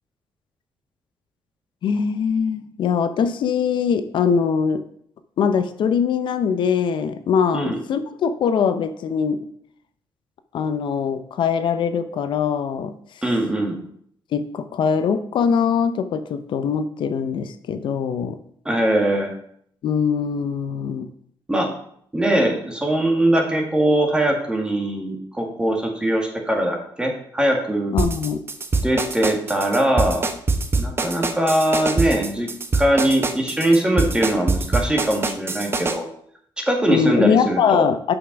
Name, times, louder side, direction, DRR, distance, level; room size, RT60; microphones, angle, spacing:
voice 1, 1.8-4.8 5.4-9.4 10.5-13.0 14.3-18.4 19.8-21.1 27.9-28.4 36.9-38.1, left 6 dB, 70° left, 10 dB, 0.6 m, -22 dB
voice 2, 13.2-13.8 18.7-19.4 21.5-21.7 22.1-27.9 28.8-30.2 30.8-36.1 36.6-37.9, right 1 dB, 10° right, 2 dB, 1.8 m, -21 dB
sound 1, 28.0-36.0, right 3 dB, 25° right, 0.8 m, -23 dB
6.8 x 5.5 x 5.8 m, 0.66 s
cardioid pair, 120°, 9 cm